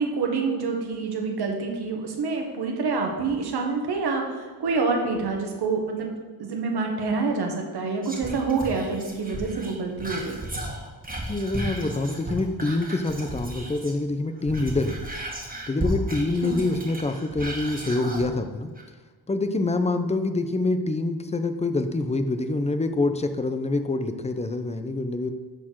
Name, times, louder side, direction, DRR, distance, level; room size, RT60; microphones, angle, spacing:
voice 1, 0.0-6.1 6.4-10.4 16.4-16.5, right 4 dB, 70° right, 2 dB, 1.6 m, -27 dB
Whispering, 8.0-14.0 14.3-18.3 18.7-18.8, right 1 dB, 20° right, 1.8 m, -34 dB
voice 2, 11.3-15.0 15.7-18.7 19.3-25.3, left 2 dB, 15° left, 8 dB, 0.6 m, -26 dB
11.5 x 4.4 x 4.6 m, 1.4 s
cardioid pair, 110°, 40 cm